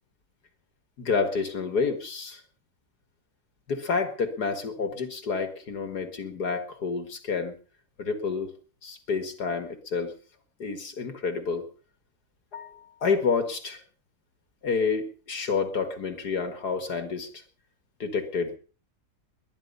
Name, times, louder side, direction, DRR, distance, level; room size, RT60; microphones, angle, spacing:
voice 1, 1.0-2.4 3.7-7.6 8.0-8.5 8.8-10.1 10.6-11.7 12.5-13.8 14.6-17.3 18.0-18.6, left 5 dB, 60° left, 9 dB, 2.3 m, -29 dB
21.5 x 10.5 x 5.5 m, 0.39 s
omnidirectional pair, 1.9 m